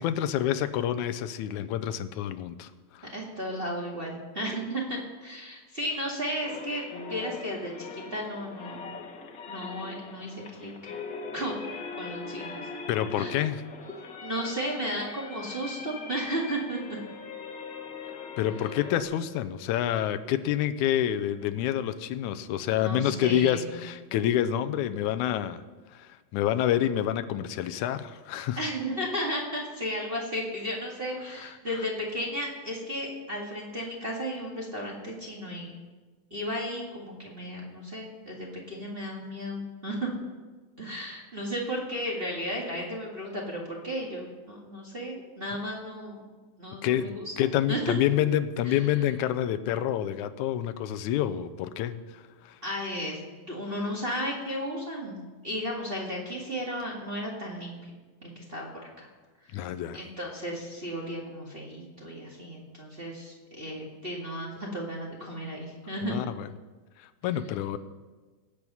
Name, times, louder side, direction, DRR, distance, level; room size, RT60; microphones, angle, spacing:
voice 1, 0.0-3.1 12.9-13.6 18.4-25.6 25.9-28.6 31.4-31.5 46.8-52.6 59.5-60.0 66.1-66.5 67.0-67.8, left 11 dB, 85° left, 12 dB, 2.0 m, -28 dB
voice 2, 3.1-8.9 9.5-10.7 11.3-11.6 12.0-12.5 13.1-13.4 14.2-17.0 22.7-23.8 28.5-35.7 36.3-40.1 40.8-46.3 46.6-47.2 47.7-48.0 48.6-49.0 52.6-55.2 55.4-57.9 58.2-58.7 59.0-59.1 59.4-59.7 59.9-66.1, equal, 25° right, -3 dB, 1.7 m, -34 dB
sound 1, 6.4-19.0, left 4 dB, 50° left, 1.6 m, -41 dB
19.0 x 8.4 x 5.5 m, 1.3 s
omnidirectional pair, 3.4 m